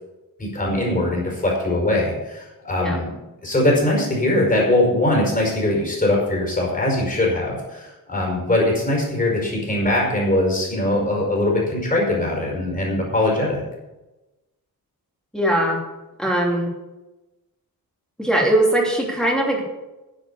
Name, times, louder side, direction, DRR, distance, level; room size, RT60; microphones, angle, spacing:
voice 1, 0.4-3.1 3.4-13.6, left 1 dB, 20° left, -2 dB, 5.0 m, -21 dB
voice 2, 15.3-15.8 16.2-16.7 18.2-19.6, right 1 dB, ahead, -2 dB, 2.8 m, -20 dB
10.5 x 9.9 x 6.9 m, 1.0 s
wide cardioid pair, 165°, 36 cm